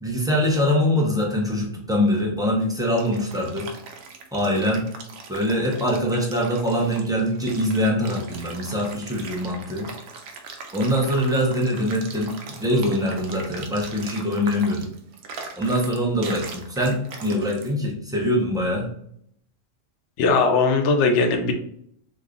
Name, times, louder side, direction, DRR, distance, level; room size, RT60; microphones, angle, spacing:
voice 1, 0.0-3.7 4.3-4.9 5.3-9.9 10.7-14.9 15.6-18.9, equal, 5° right, -2 dB, 0.4 m, -23 dB
sound 1, 2.7-17.7, right 4 dB, 85° right, 1.0 m, -40 dB
voice 2, 20.2-21.5, left 4 dB, 70° left, 5 dB, 0.8 m, -19 dB
3.1 x 2.2 x 3.7 m, 0.68 s
omnidirectional pair, 1.4 m